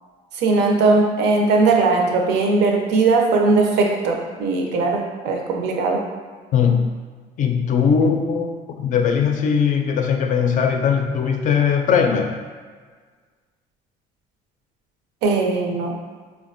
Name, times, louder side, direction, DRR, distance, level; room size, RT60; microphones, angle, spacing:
voice 1, 0.4-6.0 15.2-16.0, right 3 dB, 90° right, 1 dB, 0.5 m, -19 dB
voice 2, 6.5-6.9 7.4-12.4, left 6 dB, 50° left, 4 dB, 0.4 m, -19 dB
3.5 x 2.1 x 2.5 m, 1.5 s
cardioid pair, 110°, 17 cm